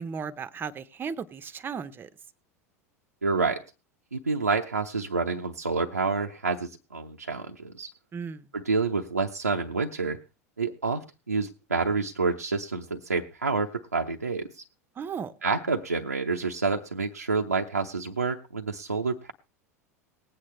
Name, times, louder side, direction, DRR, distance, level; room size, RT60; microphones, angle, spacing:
voice 1, 0.0-2.1 8.1-8.5 15.0-15.3, right 6 dB, 25° right, 13 dB, 0.7 m, -35 dB
voice 2, 3.2-3.6 4.1-7.9 8.5-10.2 10.6-14.6 15.4-19.3, right 4 dB, 85° right, 1 dB, 0.6 m, -28 dB
19.5 x 8.7 x 3.2 m, 0.30 s
figure-of-eight pair, 80°, 8 cm